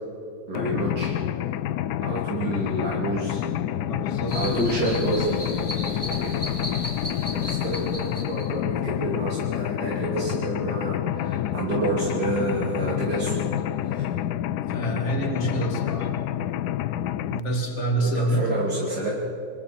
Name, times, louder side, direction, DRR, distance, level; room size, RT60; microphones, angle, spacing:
Mechanisms, 0.5-17.4, left 12 dB, 85° left, 1.2 m, -28 dB
voice 1, 0.5-1.1 2.0-3.5 4.3-5.4 6.1-6.3 7.3-13.4 13.8-14.1 18.0-19.2, right 2 dB, 75° right, -6 dB, 3.4 m, -29 dB
voice 2, 3.9-4.4 14.7-16.1 17.3-18.8, right 1 dB, 45° left, 1 dB, 2.9 m, -27 dB
sound 1, 4.3-8.5, equal, 15° left, 2.6 m, -36 dB
27.5 x 22.0 x 4.4 m, 2.9 s
omnidirectional pair, 1.7 m